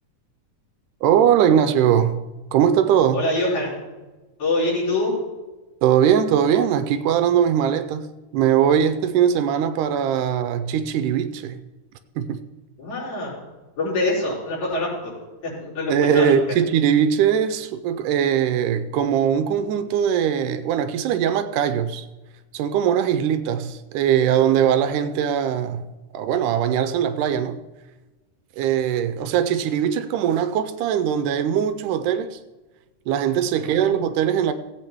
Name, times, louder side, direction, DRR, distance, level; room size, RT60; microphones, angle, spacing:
voice 1, 1.0-2.2 2.5-3.3 5.8-8.1 8.3-11.6 12.2-12.4 15.9-22.1 22.5-25.8 26.1-27.6 28.6-32.4 33.1-34.5, right 9 dB, 80° right, 2.0 m, -20 dB
voice 2, 3.1-3.7 4.4-5.1 12.8-13.3 13.8-15.1 15.4-16.4 33.5-33.9, left 2 dB, 60° left, 5.6 m, -25 dB
17.0 x 8.3 x 3.5 m
omnidirectional pair, 3.7 m